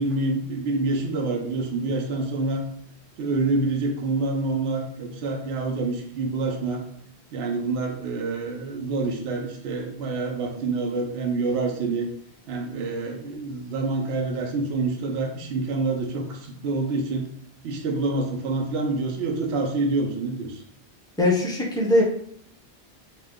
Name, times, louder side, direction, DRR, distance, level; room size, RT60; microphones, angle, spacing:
voice 1, 0.0-2.6 3.2-6.8 7.3-12.1 12.5-17.3 17.6-20.6, right 3 dB, 75° right, 1 dB, 0.8 m, -27 dB
voice 2, 21.2-22.0, left 1 dB, 5° left, -2 dB, 0.4 m, -20 dB
2.9 x 2.2 x 3.5 m, 0.66 s
omnidirectional pair, 1.1 m